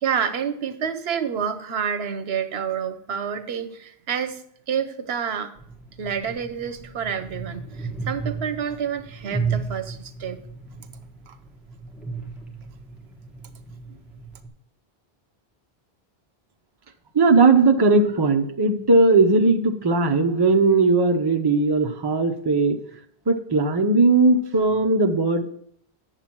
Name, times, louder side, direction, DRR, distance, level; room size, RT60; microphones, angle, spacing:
voice 1, 0.0-5.5 6.0-10.4 11.3-11.4, right 7 dB, 75° right, 9 dB, 1.0 m, -28 dB
sound 1, 5.6-14.5, right 5 dB, ahead, 1.1 m, -34 dB
voice 2, 17.1-22.8 23.3-25.4, right 3 dB, 25° right, 5 dB, 0.7 m, -18 dB
9.1 x 7.2 x 4.4 m, 0.65 s
omnidirectional pair, 1.1 m